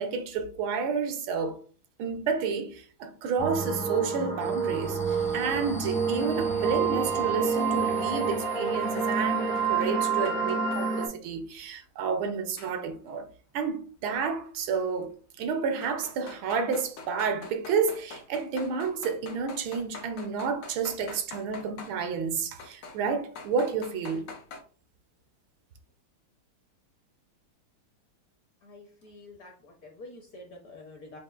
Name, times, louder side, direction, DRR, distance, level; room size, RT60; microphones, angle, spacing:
voice 1, 0.0-1.6 2.0-13.3 13.5-24.3, right 5 dB, 80° right, 1.4 m, -30 dB
sound 1, 3.4-11.1, right 5 dB, 10° left, 0.4 m, -28 dB
sound 2, 9.6-10.9 12.6-13.1 14.7-14.8 15.8-22.0 22.6-23.0 23.3-24.6, left 4 dB, 80° left, 0.7 m, -44 dB
voice 2, 28.6-31.2, left 2 dB, 60° left, 1.0 m, -48 dB
6.4 x 2.4 x 2.3 m
omnidirectional pair, 2.3 m